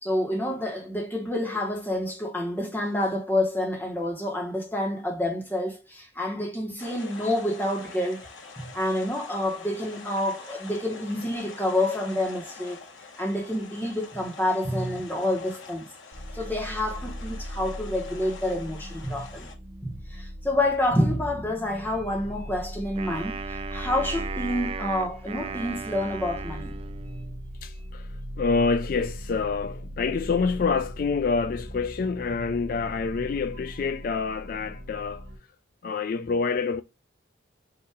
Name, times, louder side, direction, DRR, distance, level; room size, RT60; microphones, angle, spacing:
voice 1, 0.0-8.3 8.6-12.8 13.2-15.9 16.3-19.5 19.8-26.7, left 1 dB, 10° left, 1.2 m, -28 dB
sound 1, 6.8-19.5, left 4 dB, 85° left, 1.8 m, -45 dB
sound 2, 16.1-35.4, equal, 60° right, 1.4 m, -39 dB
Wind instrument woodwind instrument, 22.9-27.4, right 5 dB, 30° right, 0.4 m, -36 dB
voice 2, 27.6-35.3 35.8-36.8, left 4 dB, 45° left, 0.3 m, -27 dB
5.6 x 2.7 x 3.5 m
head